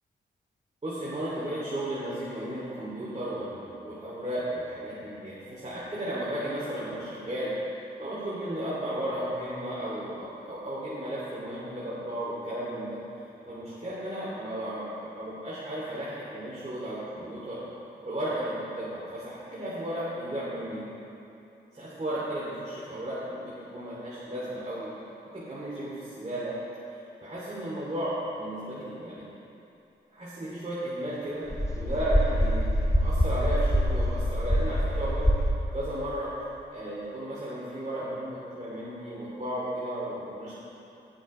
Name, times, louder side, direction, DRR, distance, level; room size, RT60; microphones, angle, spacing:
voice 1, 0.8-7.5 8.0-13.0 13.4-14.9 15.1-17.6 18.0-20.8 21.7-23.4 23.7-24.9 25.3-26.5 27.2-29.2 30.1-35.3 35.7-36.3 36.7-40.5, right 1 dB, 35° right, -9 dB, 2.7 m, -34 dB
sound 1, 31.5-35.5, equal, 15° left, 1.3 m, -25 dB
17.5 x 7.1 x 3.3 m, 2.8 s
cardioid pair, 55°, 19 cm